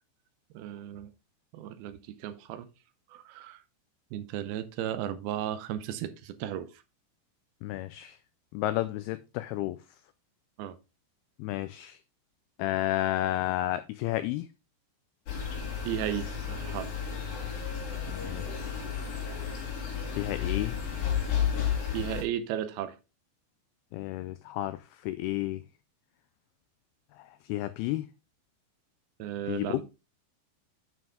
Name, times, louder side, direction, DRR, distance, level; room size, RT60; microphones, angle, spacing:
voice 1, 0.5-1.1 1.5-2.7 3.1-3.6 4.1-6.7 10.6-10.7 15.9-16.9 21.9-23.0 29.2-29.8, right 11 dB, 80° right, 2.4 m, -35 dB
voice 2, 7.6-8.2 8.5-9.8 11.4-12.0 12.6-14.5 18.1-18.8 20.1-20.8 23.9-25.6 27.2-28.0 29.5-29.7, left 15 dB, 90° left, 2.2 m, -32 dB
sound 1, 15.3-22.2, left 8 dB, 55° left, 4.4 m, -32 dB
9.2 x 6.1 x 3.5 m
omnidirectional pair, 5.0 m